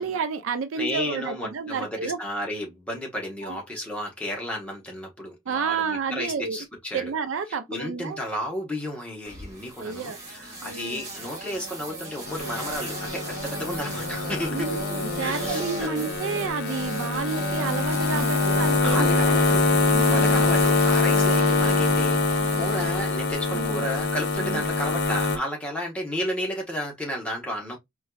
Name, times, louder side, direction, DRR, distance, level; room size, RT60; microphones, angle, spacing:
voice 1, 0.0-2.2 3.4-3.6 5.5-6.6 6.9-8.2 9.8-10.2 10.6-11.0 14.5-19.2 19.6-20.4 23.5-23.8 24.4-24.6, right 5 dB, 65° right, 0.4 m, -30 dB
voice 2, 0.7-7.1 7.7-14.8 15.2-16.1 18.8-19.7 20.0-27.8, equal, 5° left, 0.9 m, -33 dB
sound 1, 9.2-22.9, right 2 dB, 35° right, 1.7 m, -36 dB
sound 2, 12.3-25.4, left 3 dB, 50° left, 0.6 m, -24 dB
4.4 x 2.3 x 2.2 m
head